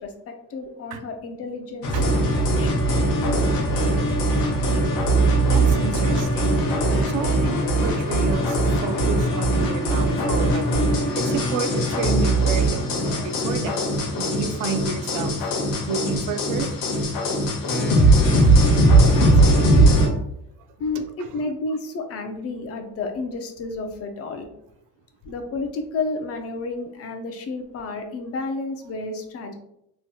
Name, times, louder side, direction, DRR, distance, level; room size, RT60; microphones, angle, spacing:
voice 1, 0.0-2.8 19.1-19.9 20.8-24.5 25.2-29.5, left 3 dB, 45° left, 5 dB, 0.5 m, -31 dB
sound 1, 1.8-20.1, right 1 dB, 85° left, 0.9 m, -20 dB
voice 2, 5.5-6.6 7.0-13.8 14.2-15.4 15.9-16.7 17.7-17.8 18.4-18.5 21.2-21.3, right 5 dB, 65° right, 6 dB, 0.4 m, -31 dB
3.0 x 2.7 x 2.2 m, 0.80 s
cardioid pair, 120°, 34 cm